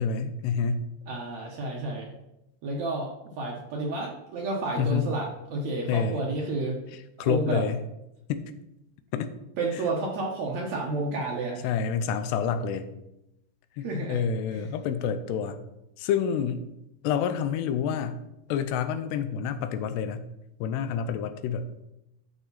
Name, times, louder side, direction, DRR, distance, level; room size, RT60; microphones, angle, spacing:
voice 1, 0.0-0.9 4.8-5.1 5.9-6.2 7.2-7.8 8.3-8.5 9.1-9.3 11.6-12.9 13.8-15.6 16.0-16.6 17.0-18.2 18.5-20.3 20.6-21.7, left 7 dB, 80° left, 10 dB, 2.8 m, -28 dB
voice 2, 1.1-2.1 2.6-6.8 7.2-7.6 9.6-11.7 13.8-14.2 14.5-14.7, right 2 dB, 80° right, -1 dB, 1.6 m, -31 dB
11.5 x 6.2 x 4.1 m, 0.88 s
omnidirectional pair, 4.9 m